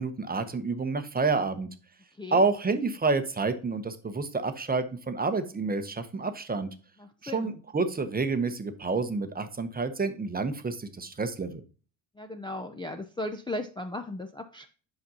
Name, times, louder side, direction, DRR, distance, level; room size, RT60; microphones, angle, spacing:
voice 1, 0.0-1.7 2.3-6.7 7.2-11.6, right 4 dB, 20° right, 9 dB, 0.8 m, -29 dB
voice 2, 2.1-2.4 7.0-7.5 12.2-14.7, left 2 dB, 10° left, 6 dB, 0.5 m, -36 dB
7.6 x 5.3 x 2.7 m, 0.38 s
hypercardioid pair, 65°, 49 cm